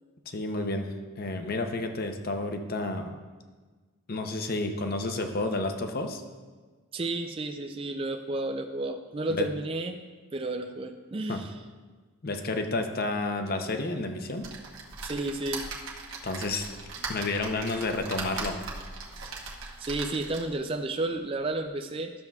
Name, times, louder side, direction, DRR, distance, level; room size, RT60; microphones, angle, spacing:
voice 1, 0.3-3.1 4.1-6.2 9.4-9.5 11.3-11.4 12.2-14.5 16.2-16.7 17.1-18.6, left 2 dB, 40° left, 6 dB, 0.7 m, -31 dB
voice 2, 6.9-10.0 10.3-11.5 15.0-15.6 19.8-22.1, right 2 dB, 25° right, 5 dB, 0.4 m, -32 dB
sound 1, 14.4-20.6 21.2-21.3 21.5-21.6, right 4 dB, 55° right, 1.2 m, -39 dB
13.0 x 7.1 x 2.3 m, 1.4 s
head